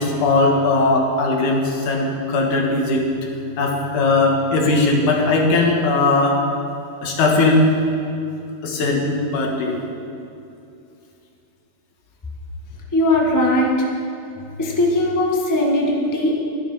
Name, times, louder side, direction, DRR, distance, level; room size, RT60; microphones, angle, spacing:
voice 1, 0.0-3.1 3.6-6.4 7.0-7.6 8.6-9.7, left 3 dB, 85° left, 0 dB, 3.1 m, -18 dB
voice 2, 12.9-13.8 14.6-16.3, left 1 dB, 30° left, -1 dB, 0.3 m, -19 dB
12.5 x 11.5 x 5.6 m, 2.6 s
omnidirectional pair, 3.4 m